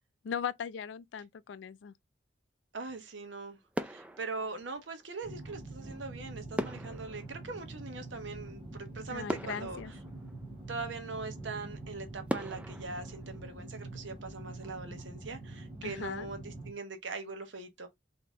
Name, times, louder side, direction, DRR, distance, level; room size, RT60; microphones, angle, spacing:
voice 1, 0.2-1.9 9.1-9.9 15.8-16.3, left 7 dB, 70° left, 0.3 m, -38 dB
voice 2, 2.7-9.8 10.7-17.9, right 3 dB, 75° right, 1.0 m, -41 dB
sound 1, 3.1-3.4 3.7-5.2 6.6-8.5 8.9-9.0 9.3-10.9 11.4-11.5 12.3-14.2 14.5-14.7, equal, 5° right, 0.3 m, -40 dB
sound 2, 5.2-16.7, right 2 dB, 30° right, 1.6 m, -45 dB
3.9 x 2.8 x 3.6 m
head